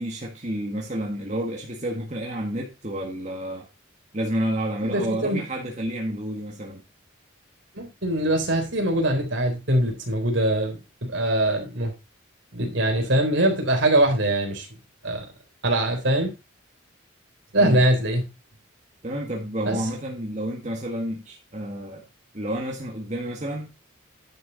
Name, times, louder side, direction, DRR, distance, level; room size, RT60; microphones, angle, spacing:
voice 1, 0.0-3.7 4.1-6.8 17.6-17.8 19.0-22.0 22.3-23.7, right 1 dB, 35° right, 1.8 m, -30 dB
voice 2, 4.8-5.4 7.8-11.9 12.5-14.7 15.0-15.2 15.6-16.3 17.5-18.2 19.7-19.8, right 1 dB, 65° right, 3.6 m, -22 dB
10.5 x 6.9 x 4.0 m
head